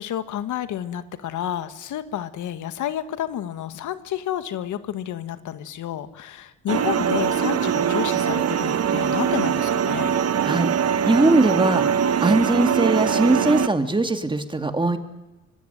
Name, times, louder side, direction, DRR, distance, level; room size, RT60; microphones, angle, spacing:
voice 1, 0.0-10.1, left 11 dB, 75° left, 11 dB, 1.9 m, -30 dB
sound 1, 6.7-13.7, right 8 dB, 55° right, 1.5 m, -22 dB
voice 2, 11.1-11.8 12.2-15.0, right 2 dB, 15° right, 8 dB, 2.9 m, -20 dB
25.0 x 24.5 x 9.5 m, 0.99 s
cardioid pair, 90°, 30 cm